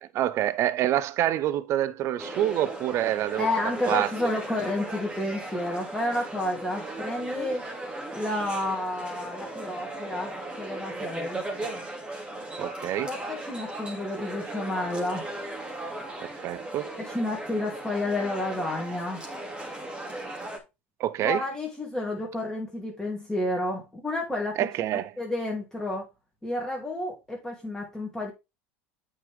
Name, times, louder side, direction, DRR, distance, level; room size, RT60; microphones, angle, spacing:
voice 1, 0.0-4.1 12.6-13.1 16.2-16.9 21.0-21.4 24.6-25.1, right 12 dB, 50° right, 0.6 m, -27 dB
sound 1, 2.2-20.6, right 2 dB, 15° right, 2.7 m, -37 dB
voice 2, 3.4-7.7 8.1-11.4 13.1-15.3 17.0-19.2 21.2-24.6 24.9-26.1 26.4-28.3, left 1 dB, 5° left, 2.5 m, -30 dB
8.3 x 5.5 x 3.4 m
hypercardioid pair, 90°, 6 cm